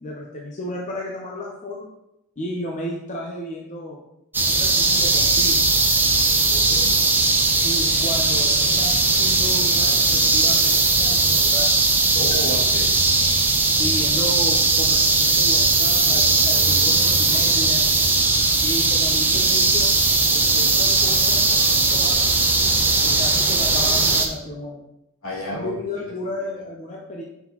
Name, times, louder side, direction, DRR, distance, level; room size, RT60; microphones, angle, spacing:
voice 1, 0.0-1.9 2.4-4.0 4.4-5.6 7.6-11.7 13.7-17.9 18.6-20.0 20.3-22.2 23.0-24.8 25.5-27.2, left 1 dB, 35° left, -1 dB, 0.7 m, -33 dB
sound 1, 4.3-24.3, right 3 dB, 10° right, 0.6 m, -18 dB
voice 2, 6.5-7.0 12.1-12.9 23.3-23.4 25.2-26.0 26.3-26.6, left 1 dB, 70° left, -5 dB, 2.4 m, -32 dB
5.9 x 5.8 x 3.0 m, 0.86 s
head